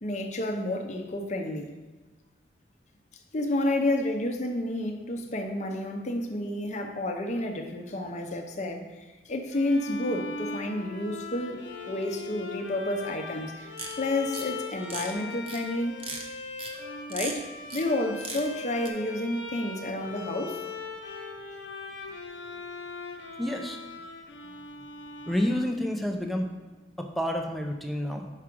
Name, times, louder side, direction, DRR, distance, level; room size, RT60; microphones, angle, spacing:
voice 1, 0.0-1.7 3.3-16.0 17.1-17.5 17.7-20.6, left 1 dB, 40° left, 4 dB, 0.7 m, -30 dB
Bowed string instrument, 9.5-26.1, left 3 dB, 80° left, 0.9 m, -40 dB
sound 1, 13.8-13.9 14.3-14.5 14.8-15.1 15.5-15.6 16.0-16.2 16.6-16.7 17.1-17.3 17.7-17.9 18.2-18.5 18.8-18.9, right 4 dB, 30° right, 0.8 m, -36 dB
voice 2, 23.4-23.8 25.3-26.5 27.0-28.3, left 1 dB, ahead, 2 dB, 0.5 m, -29 dB
4.9 x 4.8 x 6.0 m, 1.2 s
head